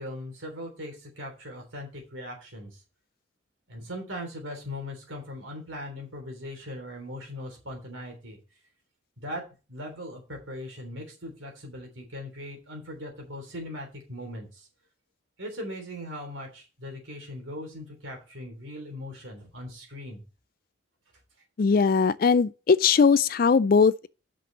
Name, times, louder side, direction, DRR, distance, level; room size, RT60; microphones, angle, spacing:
voice 1, 0.0-2.8 3.7-8.4 9.2-9.4 9.7-14.7 15.4-20.2, left 1 dB, 80° right, 3.5 m, -39 dB
voice 2, 21.6-24.1, left 5 dB, 45° left, 0.3 m, -20 dB
6.1 x 5.9 x 7.2 m
head